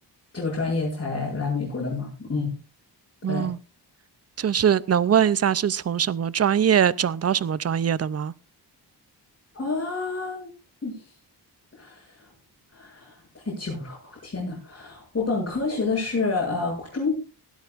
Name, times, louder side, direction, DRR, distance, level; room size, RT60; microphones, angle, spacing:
voice 1, 0.3-2.5 3.3-3.5 9.5-10.5 10.8-11.0 11.8-12.1 12.7-17.1, left 3 dB, 30° left, 7.6 m, -28 dB
voice 2, 3.2-3.6 4.4-8.3, right 8 dB, 35° right, 0.5 m, -22 dB
18.5 x 13.0 x 2.5 m
wide cardioid pair, 140°, 43 cm